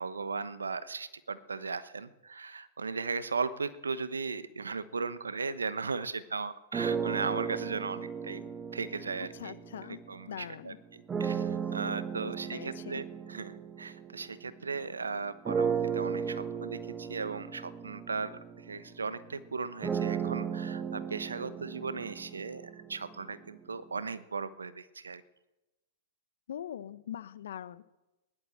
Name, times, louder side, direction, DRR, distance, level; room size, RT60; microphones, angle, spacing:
voice 1, 0.0-9.6 9.9-25.2, right 4 dB, 90° right, 14 dB, 1.0 m, -37 dB
sound 1, 6.7-10.3 11.1-14.9 15.5-23.4, right 7 dB, 20° right, 1.3 m, -35 dB
voice 2, 9.3-10.0 10.3-10.8 12.2-13.0 26.5-27.8, left 10 dB, 70° left, 16 dB, 0.9 m, -42 dB
16.5 x 11.0 x 7.8 m, 1.0 s
hypercardioid pair, 110°, 0 cm